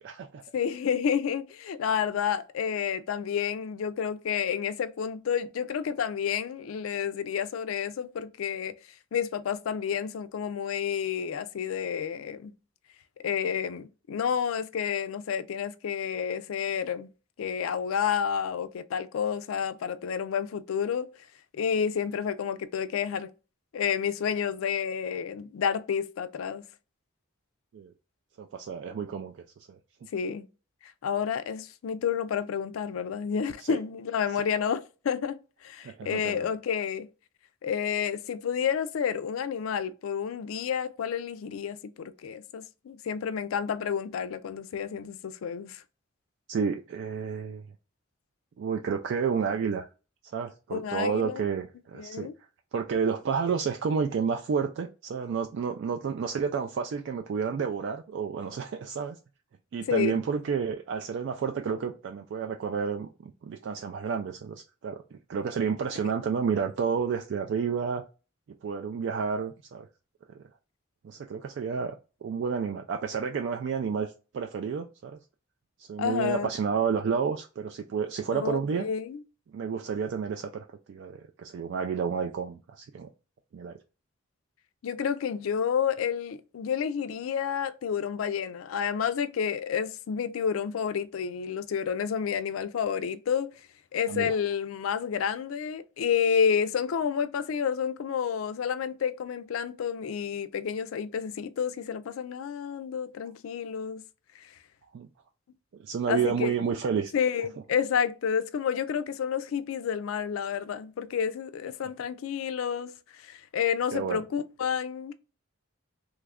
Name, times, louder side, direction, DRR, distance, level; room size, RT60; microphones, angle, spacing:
voice 1, 0.0-0.4 27.7-27.9 28.4-29.4 29.7-29.8 33.6-33.8 35.8-36.5 46.5-47.7 48.6-49.9 50.3-52.3 52.7-59.2 59.7-68.0 68.6-69.9 70.4-70.5 71.0-72.0 72.2-75.2 75.8-78.8 79.5-83.1 83.5-83.7 94.1-94.4 104.9-105.1 105.7-107.1 113.9-114.2, right 6 dB, 60° right, 0.3 m, -30 dB
voice 2, 0.5-8.7 9.1-12.5 13.2-17.1 17.4-21.1 21.5-23.3 23.7-26.6 30.1-30.5 31.0-37.1 37.6-45.8 50.7-51.4 52.0-52.3 59.9-60.2 66.0-66.1 76.0-76.5 78.3-79.2 84.8-93.5 93.9-104.0 106.1-106.6 107.1-112.9 113.2-115.1, left 7 dB, 85° left, 0.4 m, -30 dB
3.0 x 2.4 x 3.4 m
head